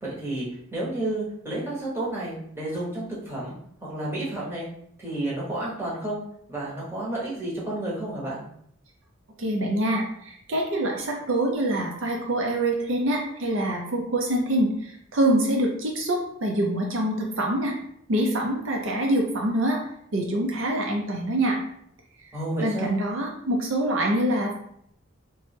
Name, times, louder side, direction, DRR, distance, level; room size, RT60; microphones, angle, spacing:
voice 1, 0.0-3.5 3.8-4.7 5.0-6.2 6.5-8.4 22.3-22.9, right 1 dB, 10° right, -7 dB, 0.9 m, -31 dB
voice 2, 9.4-17.7 18.1-19.8 20.1-21.6 22.6-24.5, right 1 dB, 70° right, 0 dB, 0.5 m, -25 dB
3.0 x 2.2 x 3.2 m, 0.69 s
head